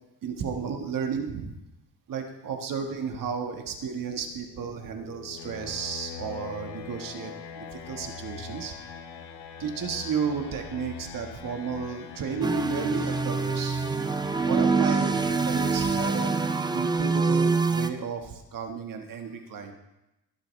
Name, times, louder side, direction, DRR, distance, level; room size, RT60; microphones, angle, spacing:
voice 1, 0.2-1.5 2.1-8.7 9.6-13.8 14.4-19.7, right 6 dB, 55° right, 4 dB, 1.5 m, -33 dB
sound 1, 4.1-17.0, left 6 dB, 75° left, 1.3 m, -43 dB
sound 2, 12.4-17.9, right 4 dB, 10° right, 0.4 m, -25 dB
22.0 x 7.4 x 3.2 m, 0.92 s
cardioid pair, 140°, 40 cm